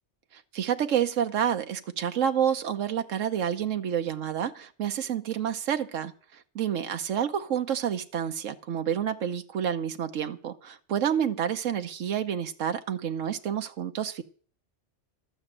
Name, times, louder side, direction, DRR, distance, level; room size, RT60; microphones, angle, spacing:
voice 1, 0.3-14.2, right 9 dB, 90° right, 1.2 m, -29 dB
13.0 x 8.8 x 7.5 m
omnidirectional pair, 1.3 m